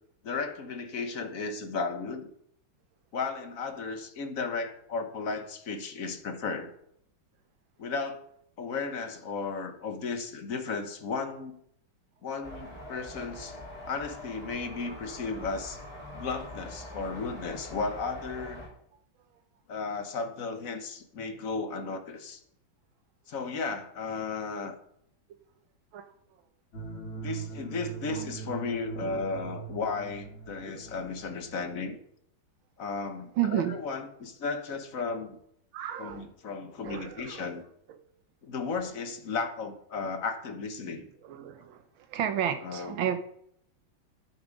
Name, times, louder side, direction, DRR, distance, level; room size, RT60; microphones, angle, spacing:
voice 1, 0.2-2.3 3.1-6.7 7.8-8.2 8.6-11.6 12.2-13.6 13.9-15.8 16.1-18.6 19.7-22.4 23.3-24.8 27.1-32.0 32.8-35.4 36.0-37.6 38.4-41.1 42.6-43.0, left 4 dB, 50° left, 7 dB, 1.3 m, -34 dB
sound 1, 12.4-18.7, left 1 dB, 20° left, 4.4 m, -43 dB
sound 2, 26.7-31.8, right 5 dB, 75° left, 3.2 m, -41 dB
voice 2, 33.4-33.8 35.7-36.3 36.8-37.5 37.9-38.0 41.2-41.8 42.1-43.2, right 10 dB, 80° right, 9 dB, 1.7 m, -32 dB
10.0 x 8.4 x 5.2 m, 0.71 s
omnidirectional pair, 2.2 m